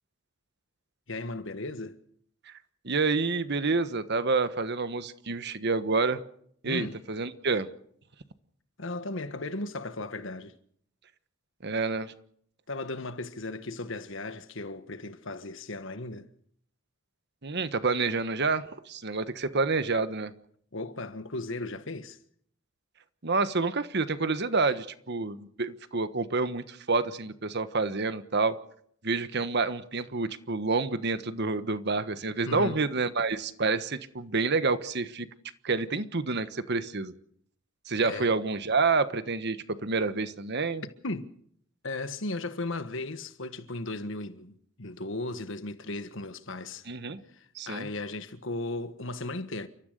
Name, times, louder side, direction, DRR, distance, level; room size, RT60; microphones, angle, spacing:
voice 1, 1.1-2.0 6.6-7.0 8.8-10.5 12.7-16.3 20.7-22.2 32.4-32.8 38.0-38.3 41.0-41.3 41.8-46.9 47.3-49.7, left 2 dB, 70° left, 1.5 m, -36 dB
voice 2, 2.8-6.2 6.6-7.7 11.6-12.1 17.4-20.3 23.2-28.6 29.0-35.3 35.6-37.1 37.9-39.6 39.8-40.8 46.9-47.2 47.5-47.9, right 3 dB, 55° right, 1.4 m, -28 dB
29.5 x 14.0 x 6.7 m
head